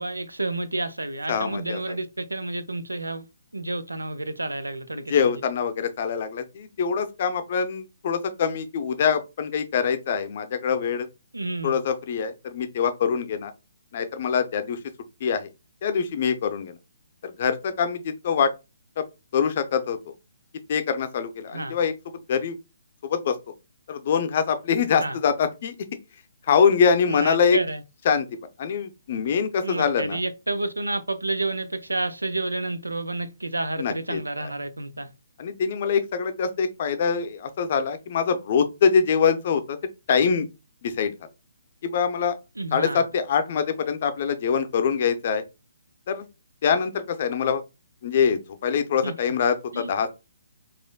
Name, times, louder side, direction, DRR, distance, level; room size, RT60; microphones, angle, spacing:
voice 1, 0.0-3.2 3.5-5.3 11.3-11.8 21.5-21.7 25.0-25.2 27.0-27.8 29.6-35.1 42.6-43.0 49.0-49.1 49.7-50.1, right 2 dB, 85° right, 0.5 m, -30 dB
voice 2, 1.3-1.8 5.1-11.1 11.6-13.5 13.9-14.8 15.2-15.5 15.8-16.8 17.2-18.5 19.0-19.1 19.3-20.0 20.7-21.9 22.3-22.6 23.0-23.4 23.9-25.7 26.5-27.6 28.1-28.2 28.6-30.2 33.8-34.2 35.4-39.8 40.1-40.5 40.8-41.1 41.8-42.3 42.7-45.4 46.1-46.3 46.6-47.6 48.0-50.1, left 6 dB, 45° left, 0.6 m, -24 dB
4.2 x 2.5 x 2.3 m
figure-of-eight pair, 135°, 0 cm